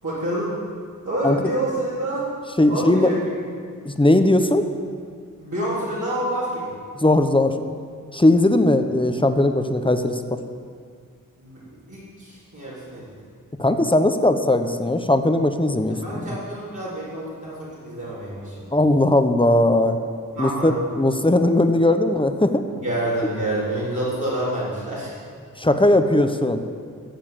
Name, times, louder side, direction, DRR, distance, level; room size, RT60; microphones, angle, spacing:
voice 1, 0.0-0.5 1.0-2.3 2.7-3.5 5.4-6.7 11.4-13.1 15.9-18.7 20.3-20.8 22.7-25.2, right 1 dB, 60° right, -11 dB, 3.9 m, -28 dB
voice 2, 2.6-3.1 3.8-4.6 7.0-7.6 8.1-10.2 13.6-16.3 18.7-20.0 20.4-22.6 25.6-26.6, left 1 dB, 15° left, 7 dB, 1.0 m, -18 dB
15.0 x 7.4 x 7.4 m, 2.1 s
wide cardioid pair, 50°, 34 cm